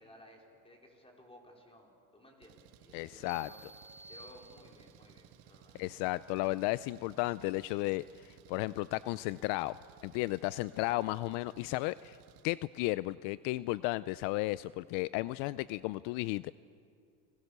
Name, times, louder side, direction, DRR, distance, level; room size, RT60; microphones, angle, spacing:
voice 1, 0.0-3.6 4.1-5.8, left 1 dB, 15° left, 1 dB, 4.4 m, -57 dB
Engine, 2.4-12.4, right 11 dB, 80° right, 1.6 m, -59 dB
voice 2, 2.9-3.5 5.8-9.8 10.0-12.2 12.4-16.5, left 19 dB, 70° left, 17 dB, 0.6 m, -34 dB
sound 1, 3.3-5.1, right 2 dB, 15° right, 1.3 m, -54 dB
30.0 x 21.5 x 6.7 m, 2.4 s
cardioid pair, 135°, 44 cm